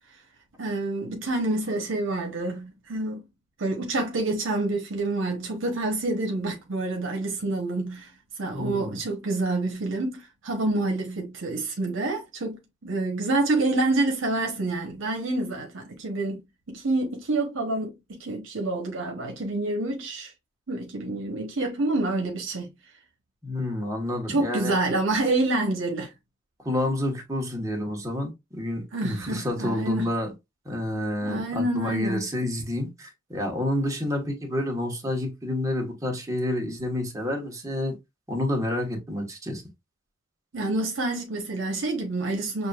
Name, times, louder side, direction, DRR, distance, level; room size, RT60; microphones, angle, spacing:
voice 1, 0.6-3.2 3.6-8.1 8.4-16.4 16.7-20.3 20.7-22.7 24.3-26.1 28.9-30.1 31.2-32.3 40.5-42.7, right 2 dB, 65° right, 1.0 m, -27 dB
voice 2, 8.5-9.0 23.4-24.7 26.6-30.3 30.6-37.9 38.3-39.6, left 1 dB, 15° right, 1.2 m, -29 dB
6.5 x 2.6 x 2.3 m
head